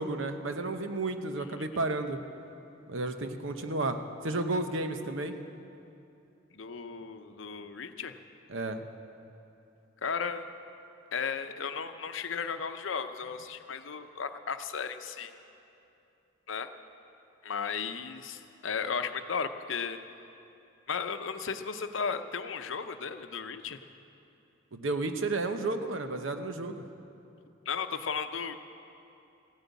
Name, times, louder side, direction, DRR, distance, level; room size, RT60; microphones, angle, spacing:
voice 1, 0.0-2.2 2.9-5.4 8.5-8.8 24.7-26.8, right 2 dB, 75° right, 7 dB, 0.9 m, -32 dB
voice 2, 6.5-8.2 10.0-10.5 11.1-15.3 16.5-16.7 17.4-20.0 20.9-23.8 27.7-28.5, left 6 dB, 70° left, 9 dB, 0.7 m, -35 dB
15.5 x 9.2 x 8.2 m, 2.8 s
head